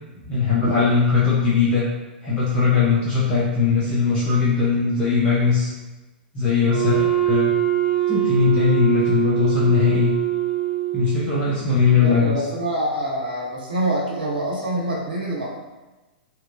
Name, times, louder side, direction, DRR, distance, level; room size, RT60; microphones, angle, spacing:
voice 1, 0.3-1.9 2.2-5.7 6.3-7.0 7.2-7.5 8.1-10.1 10.9-12.3, left 5 dB, 20° left, -8 dB, 0.6 m, -19 dB
Wind instrument woodwind instrument, 6.7-11.4, right 13 dB, 70° left, 1.2 m, -22 dB
voice 2, 6.7-7.1 12.0-15.5, right 1 dB, 70° right, -3 dB, 0.9 m, -26 dB
2.8 x 2.2 x 2.5 m, 1.1 s
figure-of-eight pair, 105°, 5 cm